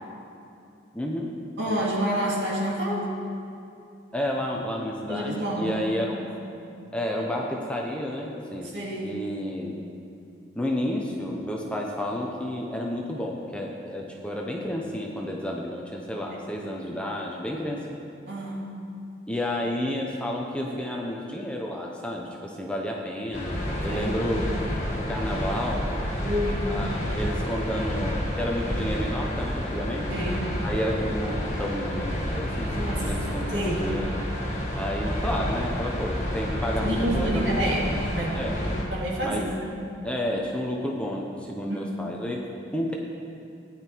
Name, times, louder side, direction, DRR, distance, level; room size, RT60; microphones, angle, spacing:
voice 1, 0.9-1.4 1.7-1.8 4.1-6.3 6.9-8.7 9.0-9.8 10.5-18.0 19.3-24.4 24.9-25.8 26.7-30.1 30.6-34.2 34.8-37.5 38.3-38.6 39.2-39.4 40.0-42.4 42.7-42.9, equal, 5° left, -1 dB, 0.8 m, -31 dB
voice 2, 1.6-3.1 5.1-5.8 6.2-6.3 8.7-9.1 16.2-16.4 18.3-18.7 23.9-24.1 26.2-26.7 30.1-30.5 32.7-33.1 33.5-33.9 36.7-38.4 38.9-39.7 41.6-41.9, equal, 60° right, -4 dB, 2.5 m, -29 dB
sound 1, 23.3-38.8, equal, 35° left, 2.3 m, -29 dB
15.5 x 10.0 x 4.6 m, 2.6 s
head